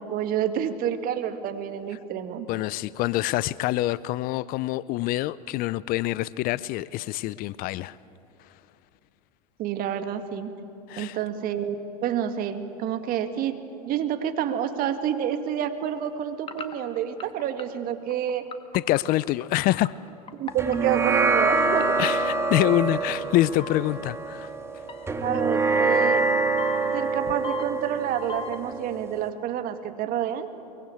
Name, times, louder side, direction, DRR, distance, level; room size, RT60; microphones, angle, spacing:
voice 1, 0.0-2.5 9.6-10.5 11.0-18.5 20.3-22.0 25.2-26.3 26.9-30.5, right 9 dB, 45° right, 2.0 m, -28 dB
voice 2, 2.5-8.0 10.9-11.2 18.7-19.9 22.0-24.5, left 16 dB, 45° left, 0.6 m, -26 dB
sound 1, 16.4-21.4 21.8-23.2 23.6-24.1 24.4-24.5 24.9-25.9 26.6-28.7, left 5 dB, 25° left, 1.8 m, -38 dB
sound 2, 20.6-29.3, right 3 dB, 15° right, 2.1 m, -25 dB
23.5 x 23.0 x 8.6 m
hypercardioid pair, 90°, 20 cm